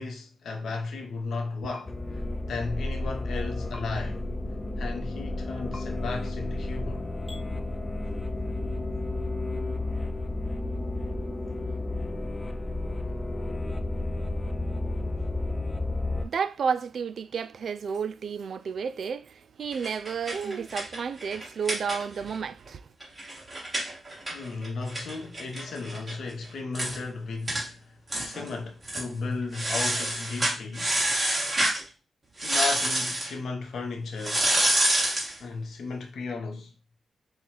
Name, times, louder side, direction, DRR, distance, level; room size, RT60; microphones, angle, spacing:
voice 1, 0.0-4.3 4.8-7.1 24.3-30.9 32.4-34.5 35.4-36.7, left 4 dB, 80° left, 0.7 m, -35 dB
sound 1, 1.7-1.9 3.7-3.8 5.7-5.8 7.3-7.4, left 2 dB, 5° left, 1.2 m, -42 dB
sound 2, 1.9-16.3, left 2 dB, 20° left, 0.4 m, -32 dB
voice 2, 16.2-22.9, right 6 dB, 65° right, 0.3 m, -31 dB
sound 3, 19.7-22.4 22.7-22.8 23.0-26.1 26.4-26.5 26.7-27.0 27.5-27.7 28.1-28.5 28.8-29.1 29.5-31.8 32.4-33.3 34.2-35.3, right 1 dB, 25° right, 1.6 m, -28 dB
5.6 x 2.3 x 3.0 m
wide cardioid pair, 110°, 0 cm